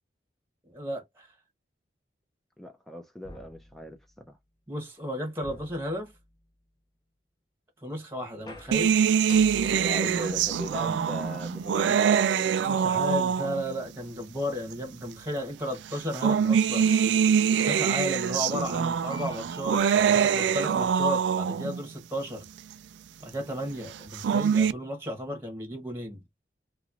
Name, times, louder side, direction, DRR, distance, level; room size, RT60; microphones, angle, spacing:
voice 1, 0.7-1.3 4.7-6.1 7.8-9.0 10.2-10.3 12.6-16.9 17.7-22.5 23.2-26.2, equal, 15° right, 1.0 m, -34 dB
voice 2, 2.6-4.4 9.7-12.5, left 1 dB, ahead, 0.5 m, -39 dB
sound 1, 3.2-4.3 5.4-6.6 8.4-11.9 12.8-12.9 16.1-17.4 18.8-18.9 19.1-20.4, left 2 dB, 25° left, 0.8 m, -50 dB
sound 2, 8.7-13.8 14.7-14.8 15.9-21.8 23.9-24.7, right 7 dB, 85° right, 0.3 m, -24 dB
3.0 x 2.9 x 2.4 m
head